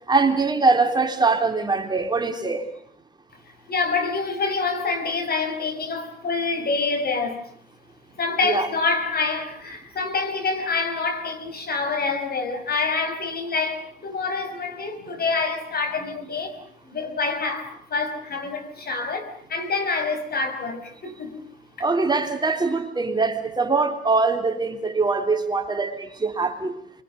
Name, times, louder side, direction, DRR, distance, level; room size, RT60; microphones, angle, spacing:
voice 1, 0.1-2.7 8.4-8.7 21.8-26.8, right 3 dB, 20° right, 3.5 m, -22 dB
voice 2, 3.7-7.4 8.2-16.6 16.8-21.4 21.8-21.9, left 4 dB, 50° left, 5.4 m, -26 dB
25.0 x 24.0 x 6.7 m
cardioid pair, 90°, 20 cm